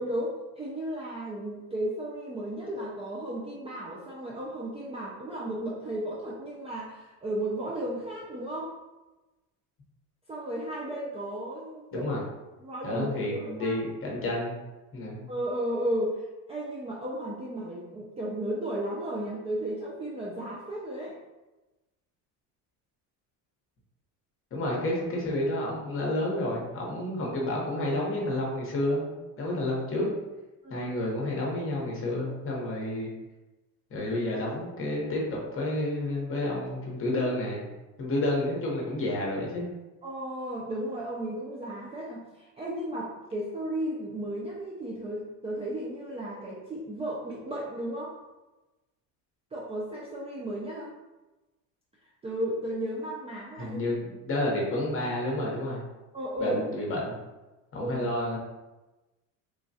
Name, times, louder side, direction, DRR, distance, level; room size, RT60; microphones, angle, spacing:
voice 1, 0.0-8.7 10.3-12.1 12.6-13.8 15.3-21.2 30.6-30.9 40.0-48.1 49.5-50.9 52.2-53.8 56.1-56.6 57.8-58.1, right 1 dB, 15° right, -5 dB, 0.3 m, -34 dB
voice 2, 12.8-14.6 14.9-15.3 24.5-29.1 29.4-30.1 30.7-33.1 33.9-37.7 38.0-39.7 53.6-55.8 56.4-57.2 57.7-58.4, left 1 dB, 35° left, -2 dB, 0.9 m, -30 dB
3.1 x 2.2 x 2.7 m, 1.1 s
cardioid pair, 110°, 39 cm